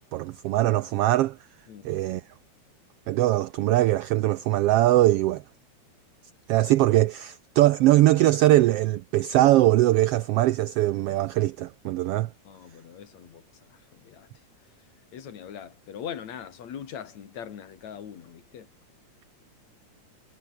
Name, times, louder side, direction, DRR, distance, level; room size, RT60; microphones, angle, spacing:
voice 1, 0.1-1.4 1.8-2.2 3.1-5.4 6.5-12.3, right 15 dB, 85° right, 1.3 m, -21 dB
voice 2, 12.4-14.3 14.6-14.7 15.1-18.7, left 8 dB, 70° left, 3.4 m, -41 dB
omnidirectional pair, 3.3 m